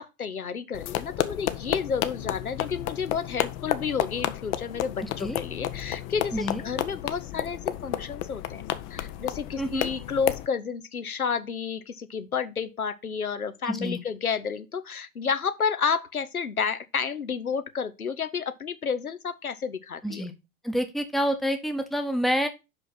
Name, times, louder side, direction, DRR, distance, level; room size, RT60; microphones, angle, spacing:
voice 1, 0.0-8.6 8.9-20.3, left 6 dB, 85° left, 0.8 m, -31 dB
sound 1, 0.7-10.5, left 13 dB, 30° left, 0.6 m, -32 dB
voice 2, 5.0-5.4 6.3-6.6 9.6-9.9 13.7-14.0 20.0-20.3 20.6-22.5, equal, ahead, 0.8 m, -28 dB
5.6 x 5.5 x 5.7 m
figure-of-eight pair, 90°, 42 cm